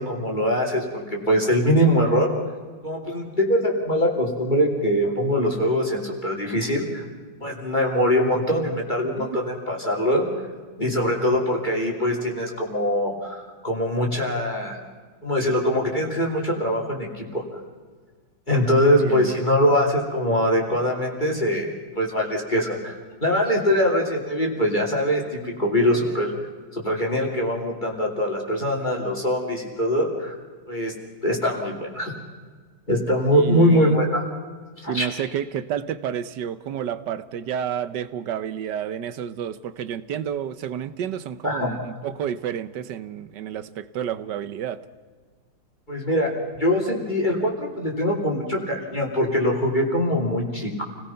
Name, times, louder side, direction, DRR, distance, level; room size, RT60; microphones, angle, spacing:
voice 1, 0.0-2.3 2.8-7.0 7.4-10.3 10.8-14.8 15.2-17.6 18.5-21.7 22.0-22.9 23.2-26.3 26.7-30.3 30.7-30.9 31.2-32.1 32.9-34.2 34.8-35.1 41.4-41.8 45.9-50.8, equal, 25° left, 0 dB, 3.0 m, -23 dB
voice 2, 18.7-19.3 33.3-33.9 34.9-44.8, right 9 dB, 70° right, 13 dB, 1.5 m, -30 dB
29.0 x 18.5 x 5.7 m, 1.5 s
omnidirectional pair, 2.1 m